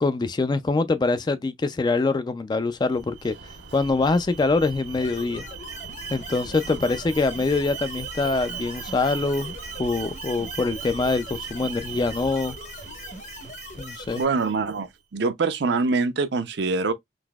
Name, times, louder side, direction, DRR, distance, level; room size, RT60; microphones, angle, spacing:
voice 1, 0.0-3.4 3.7-5.4 6.1-12.6 13.8-14.2, left 3 dB, 25° left, 0.3 m, -24 dB
Alarm, 2.7-14.8, right 7 dB, 90° right, 1.4 m, -39 dB
sound 1, 5.0-14.2, left 3 dB, 40° left, 0.9 m, -42 dB
voice 2, 14.1-16.9, right 4 dB, 65° right, 0.5 m, -24 dB
3.9 x 2.6 x 2.2 m
head